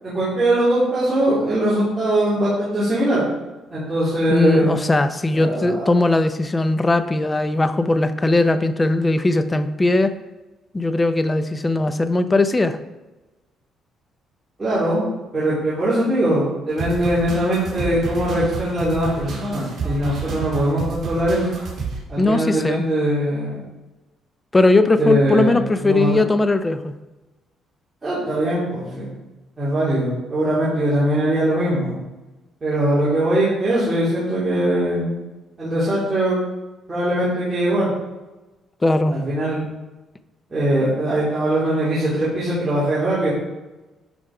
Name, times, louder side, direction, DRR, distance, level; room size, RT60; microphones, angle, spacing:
voice 1, 0.0-3.2 3.7-4.7 5.3-5.9 14.6-15.0 15.3-21.4 22.1-23.6 25.0-26.2 28.0-29.1 29.6-32.0 32.6-35.2 35.6-36.4 36.9-37.9 39.1-39.6 40.5-43.3, right 1 dB, 20° right, -11 dB, 3.5 m, -21 dB
voice 2, 4.3-10.1 10.7-12.8 22.2-22.8 24.5-26.9 38.8-39.2, left 2 dB, 15° left, 10 dB, 0.6 m, -19 dB
sound 1, 16.8-22.0, right 4 dB, 45° right, 3.4 m, -30 dB
11.0 x 5.2 x 4.9 m, 1.1 s
cardioid pair, 135°, 0 cm